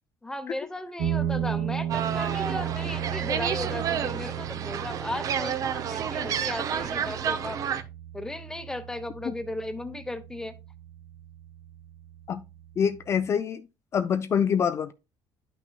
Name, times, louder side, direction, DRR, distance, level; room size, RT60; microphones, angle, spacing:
voice 1, 0.2-7.6 8.1-10.6, left 1 dB, 5° left, 0.8 m, -36 dB
sound 1, 1.0-10.0, right 9 dB, 85° right, 1.1 m, -34 dB
sound 2, 1.9-7.8, right 8 dB, 45° right, 0.7 m, -30 dB
voice 2, 12.8-13.6 13.9-14.9, left 7 dB, 35° left, 0.4 m, -25 dB
10.5 x 6.0 x 2.3 m
cardioid pair, 150°, 8 cm